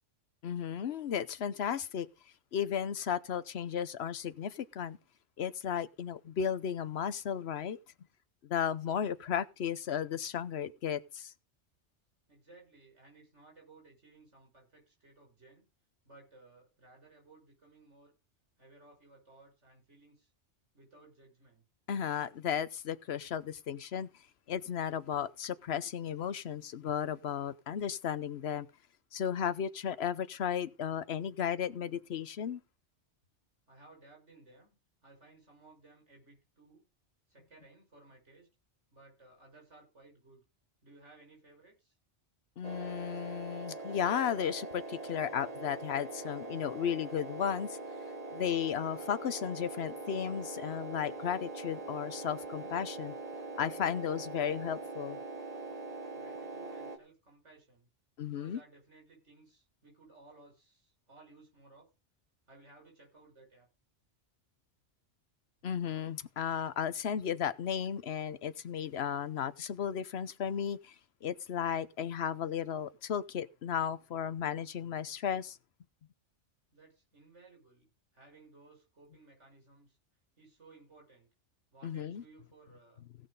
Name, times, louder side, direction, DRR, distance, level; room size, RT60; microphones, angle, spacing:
voice 1, 0.4-2.1 2.5-5.0 5.4-7.8 8.4-11.3 21.9-24.1 24.5-28.7 29.1-32.6 42.6-47.8 48.3-53.1 53.6-55.2 58.2-58.6 65.6-70.9 71.2-75.6 81.8-82.2, left 8 dB, 65° left, 1.0 m, -34 dB
voice 2, 12.3-15.6 16.0-18.1 18.6-20.3 20.7-21.6 33.7-34.7 35.0-36.8 37.3-38.5 38.9-40.4 40.8-41.9 56.1-57.9 58.3-61.9 62.5-63.7 76.7-77.9 78.1-80.0 80.4-81.3 81.7-83.0, right 3 dB, 75° right, 6.8 m, -59 dB
sound 1, 42.6-57.0, right 2 dB, 35° right, 1.3 m, -42 dB
17.0 x 6.2 x 5.3 m
omnidirectional pair, 1.2 m